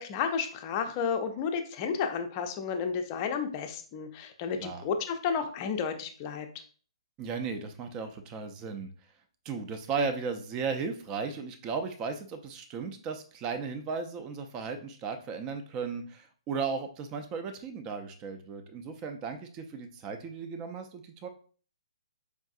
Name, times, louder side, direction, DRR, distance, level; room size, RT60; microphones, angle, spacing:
voice 1, 0.0-6.5, left 6 dB, 30° left, 6 dB, 0.5 m, -32 dB
voice 2, 7.2-8.9 9.5-21.3, right 5 dB, 20° right, 7 dB, 0.5 m, -35 dB
4.6 x 2.5 x 2.4 m, 0.42 s
hypercardioid pair, 140°, 3 cm